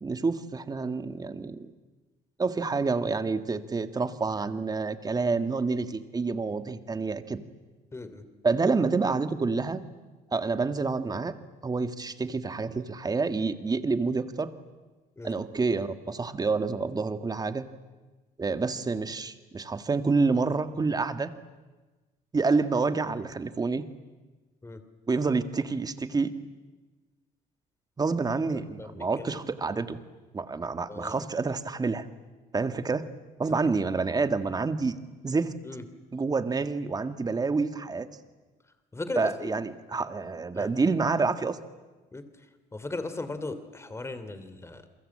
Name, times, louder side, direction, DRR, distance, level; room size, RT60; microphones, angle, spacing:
voice 1, 0.0-1.7 2.4-7.4 8.4-9.9 10.3-11.3 11.6-14.5 15.2-17.7 18.4-21.3 22.3-23.8 25.1-26.3 28.0-30.0 30.3-32.1 32.5-33.1 33.4-35.0 35.2-35.5 36.1-38.1 39.2-41.6, right 4 dB, 25° right, 10 dB, 1.8 m, -28 dB
voice 2, 7.9-8.2 15.2-15.3 24.6-24.8 28.8-29.4 30.9-31.2 33.6-33.7 35.6-35.8 38.9-39.6 40.5-40.7 42.1-42.2 42.7-44.9, left 2 dB, 15° left, 11 dB, 3.0 m, -37 dB
29.5 x 22.5 x 8.7 m, 1.2 s
cardioid pair, 110°, 17 cm